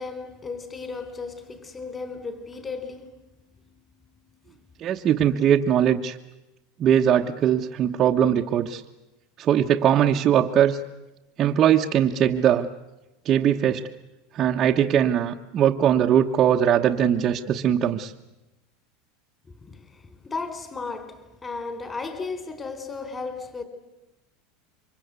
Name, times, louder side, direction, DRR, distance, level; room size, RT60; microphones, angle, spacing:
voice 1, 0.0-3.2 19.6-23.6, left 4 dB, 20° left, 4.0 m, -35 dB
voice 2, 4.8-6.2 6.8-8.8 9.4-10.8 11.4-12.7 13.2-13.9 14.3-18.1, right 9 dB, 35° right, 1.2 m, -20 dB
28.0 x 25.0 x 8.3 m
supercardioid pair, 125°, 0 cm